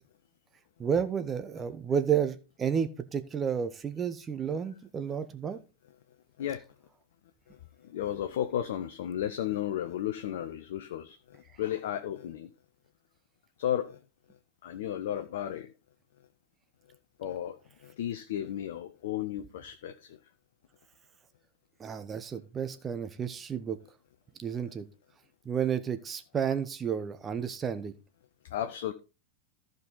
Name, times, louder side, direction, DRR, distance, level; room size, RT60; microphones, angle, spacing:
voice 1, 0.8-5.6 21.8-23.8 24.4-24.8 25.4-27.9, right 7 dB, 20° right, 1.0 m, -31 dB
voice 2, 7.9-11.2 11.6-12.5 13.6-14.0 14.6-15.7 17.2-17.6 17.8-19.9 28.5-28.9, left 11 dB, 55° left, 0.7 m, -33 dB
14.5 x 5.3 x 4.0 m
figure-of-eight pair, 90°, 0 cm